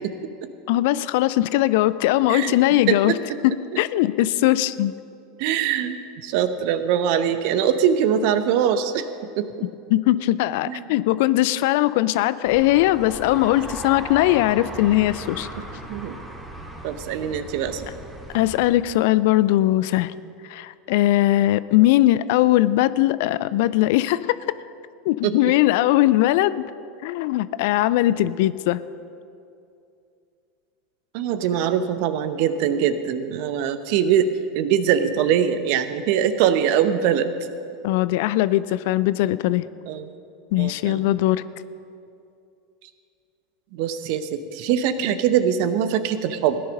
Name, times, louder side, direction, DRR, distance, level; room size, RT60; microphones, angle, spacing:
voice 1, 0.7-3.1 3.4-4.9 9.9-15.5 18.3-20.1 20.5-24.4 25.1-26.6 27.0-28.8 37.8-39.7 40.5-41.4, left 15 dB, 65° left, 16 dB, 0.4 m, -20 dB
voice 2, 5.4-9.1 9.4-9.5 10.6-10.8 15.9-16.2 16.8-17.9 25.2-25.4 31.1-37.3 39.9-40.1 40.6-41.0 43.7-46.6, right 9 dB, 60° right, 11 dB, 0.9 m, -22 dB
sound 1, 12.4-18.7, right 1 dB, 15° right, 2.8 m, -37 dB
16.5 x 10.0 x 5.4 m, 2.5 s
hypercardioid pair, 80°, 0 cm